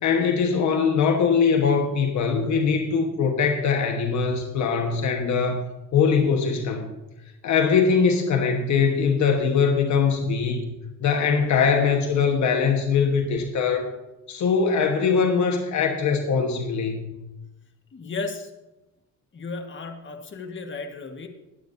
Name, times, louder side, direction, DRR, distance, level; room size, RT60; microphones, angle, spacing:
voice 1, 0.0-5.6 5.9-6.9 7.4-10.6 11.0-13.9 14.3-17.1, left 5 dB, 70° left, 4 dB, 1.4 m, -22 dB
voice 2, 17.9-18.5 19.3-21.3, left 3 dB, 40° left, 4 dB, 1.6 m, -34 dB
19.5 x 9.0 x 2.7 m, 0.99 s
cardioid pair, 90°, 30 cm